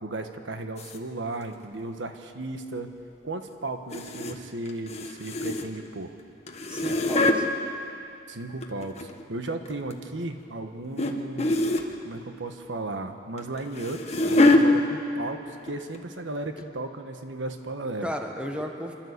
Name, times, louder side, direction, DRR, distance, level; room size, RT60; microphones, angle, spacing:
voice 1, 0.0-2.9 3.2-6.1 8.3-11.7 12.0-18.1 18.6-18.7, right 2 dB, 80° right, 7 dB, 1.2 m, -35 dB
sound 1, 0.8-1.0 3.9-4.4 4.7-5.9 6.5-7.4 8.4-9.2 9.7-10.0 11.0-11.1 11.4-11.9 13.4-14.6 15.5-15.7 15.9-16.0 16.6-16.7, left 2 dB, 35° left, 1.3 m, -24 dB
voice 2, 6.7-7.5 14.7-14.8 18.0-18.9, equal, 5° right, 3 dB, 1.4 m, -34 dB
27.0 x 12.0 x 8.1 m, 2.7 s
head